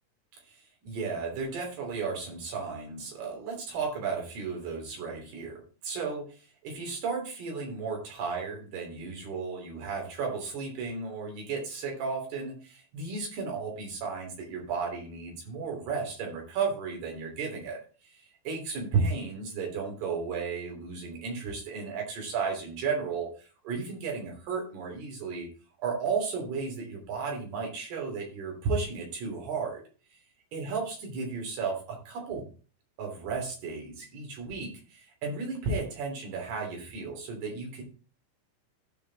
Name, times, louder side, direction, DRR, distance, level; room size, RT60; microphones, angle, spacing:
voice 1, 0.8-6.3 6.6-25.5 25.8-29.8 30.5-32.5 33.0-37.8, right 5 dB, 75° right, 1 dB, 5.0 m, -34 dB
15.0 x 5.4 x 3.9 m, 0.37 s
omnidirectional pair, 4.7 m